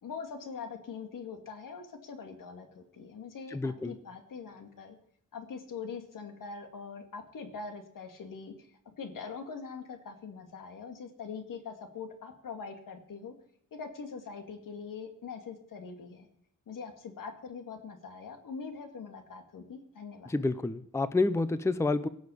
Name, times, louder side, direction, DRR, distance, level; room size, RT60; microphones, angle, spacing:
voice 1, 0.0-5.0 5.3-13.3 13.7-16.3 16.7-20.4, left 5 dB, 80° left, 6 dB, 2.4 m, -43 dB
voice 2, 3.5-3.9 20.3-22.1, left 3 dB, 10° left, 14 dB, 0.6 m, -29 dB
17.0 x 6.4 x 8.5 m, 0.67 s
wide cardioid pair, 125°, 32 cm